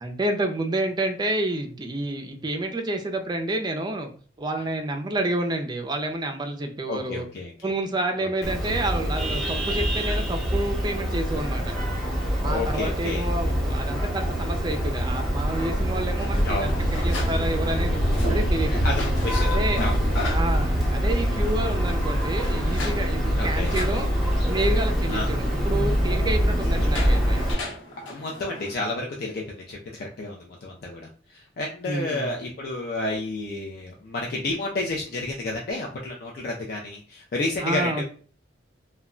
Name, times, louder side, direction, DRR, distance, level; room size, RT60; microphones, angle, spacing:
voice 1, 0.0-4.1 4.4-7.3 7.6-11.8 12.4-18.0 18.3-18.8 19.4-19.8 20.3-24.1 24.5-27.5 31.9-32.3 37.6-38.0, right 2 dB, 25° right, 4 dB, 0.4 m, -29 dB
voice 2, 6.9-7.7 8.2-8.5 12.4-13.2 16.4-17.1 18.7-20.0 23.4-23.7 25.1-25.3 28.0-38.0, left 2 dB, 55° left, -1 dB, 0.4 m, -31 dB
Vehicle horn car horn honking, 8.4-27.5, equal, ahead, 0.8 m, -24 dB
sound 1, 16.1-28.7, left 1 dB, 90° left, 1.0 m, -37 dB
2.2 x 2.1 x 3.6 m, 0.43 s
head